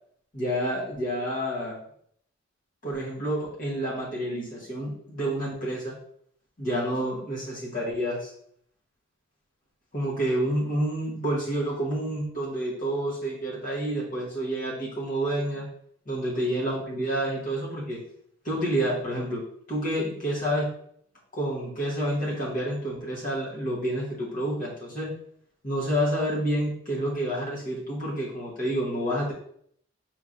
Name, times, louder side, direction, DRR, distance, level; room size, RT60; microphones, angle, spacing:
voice 1, 0.3-1.8 2.8-6.0 6.6-8.3 9.9-15.6 16.1-18.0 18.4-19.4 19.7-20.7 21.3-25.1 25.6-29.3, right 1 dB, 40° left, -5 dB, 1.1 m, -29 dB
5.6 x 3.1 x 2.5 m, 0.65 s
head